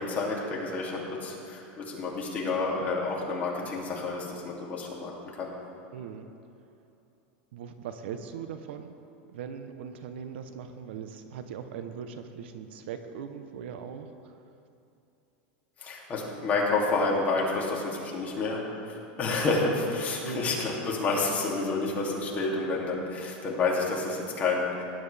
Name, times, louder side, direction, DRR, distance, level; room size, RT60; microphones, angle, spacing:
voice 1, 0.0-5.1 5.4-5.5 15.8-24.8, left 3 dB, 25° left, -3 dB, 2.7 m, -29 dB
voice 2, 5.9-6.3 7.5-8.9 9.3-14.4 20.2-20.6, right 7 dB, 80° right, 8 dB, 0.9 m, -40 dB
18.5 x 10.5 x 3.4 m, 2.8 s
supercardioid pair, 140°, 6 cm